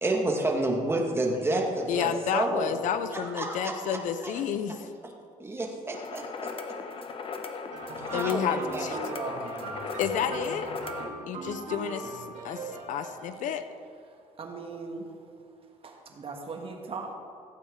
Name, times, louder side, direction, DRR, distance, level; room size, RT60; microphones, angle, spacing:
voice 1, 0.0-2.8 3.4-4.4 5.4-6.5 8.0-8.9, right 2 dB, 20° right, 1 dB, 2.0 m, -29 dB
voice 2, 1.9-4.9 8.1-9.0 10.0-10.7 11.3-13.6, left 8 dB, 70° left, 10 dB, 0.8 m, -30 dB
sound 1, 5.9-11.1, left 5 dB, 45° left, 1.1 m, -38 dB
sound 2, 7.7-13.5, right 3 dB, 70° right, 2.9 m, -40 dB
voice 3, 8.8-9.5 14.4-15.1 15.8-17.1, right 4 dB, 45° right, 3 dB, 1.7 m, -38 dB
16.0 x 8.6 x 3.9 m, 2.5 s
cardioid pair, 90°, 13 cm